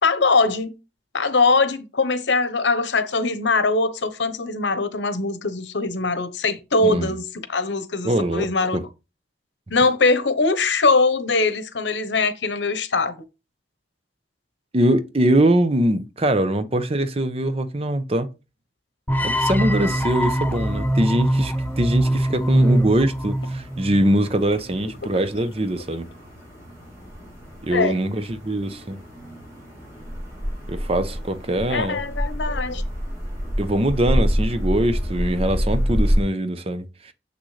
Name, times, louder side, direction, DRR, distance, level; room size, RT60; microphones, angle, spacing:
voice 1, 0.0-0.7 1.1-8.8 9.7-13.2 27.7-28.0 31.7-32.8, left 3 dB, 90° left, 1.0 m, -21 dB
voice 2, 6.8-7.1 8.0-8.5 8.7-8.8 14.7-18.3 19.2-26.1 27.6-29.0 30.7-32.0 33.6-37.1, right 1 dB, 35° right, 0.7 m, -22 dB
sound 1, 19.1-24.2, right 1 dB, 10° left, 0.5 m, -23 dB
sound 2, 19.3-36.2, equal, 15° right, 4.5 m, -29 dB
7.0 x 6.3 x 3.3 m
head